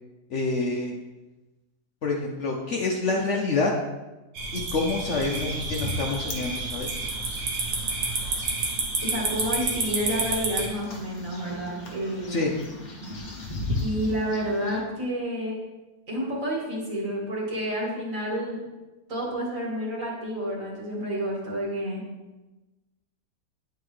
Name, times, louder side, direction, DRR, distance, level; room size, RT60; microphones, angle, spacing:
voice 1, 0.3-0.9 2.0-3.7 4.5-6.9 12.3-12.5, left 3 dB, 60° left, 0 dB, 0.9 m, -27 dB
sound 1, 4.3-10.7, right 3 dB, 70° right, 1.5 m, -30 dB
sound 2, 4.8-14.8, left 2 dB, 35° left, 1.0 m, -37 dB
voice 2, 9.0-12.4 13.8-15.5 16.1-18.6 19.1-22.0, equal, 55° right, -4 dB, 2.1 m, -29 dB
9.5 x 4.7 x 3.2 m, 1.1 s
omnidirectional pair, 1.7 m